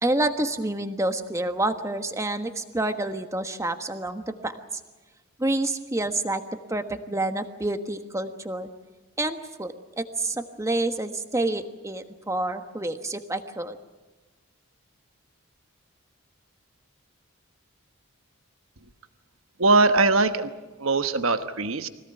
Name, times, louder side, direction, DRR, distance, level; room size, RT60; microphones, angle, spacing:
voice 1, 0.0-4.8 5.4-6.4 6.7-8.7 9.2-13.8, right 2 dB, 15° right, 7 dB, 1.3 m, -28 dB
voice 2, 19.6-20.5 20.8-21.9, right 3 dB, 70° right, 9 dB, 1.2 m, -21 dB
24.5 x 17.5 x 9.0 m, 1.2 s
head